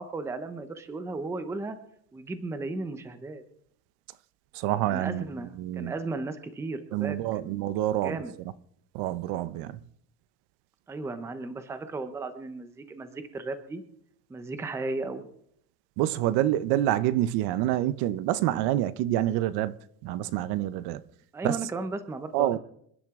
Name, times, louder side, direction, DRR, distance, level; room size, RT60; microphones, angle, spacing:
voice 1, 0.0-1.8 2.1-3.4 4.9-7.7 8.0-8.4 10.9-13.8 14.3-15.3 21.3-22.6, right 3 dB, 5° right, 0.6 m, -35 dB
voice 2, 4.5-5.3 5.6-5.9 6.9-8.2 8.9-9.8 16.0-19.7 20.0-21.0 21.4-21.6 22.3-22.6, right 13 dB, 60° right, 0.8 m, -27 dB
27.0 x 10.5 x 3.6 m
cardioid pair, 180°, 46 cm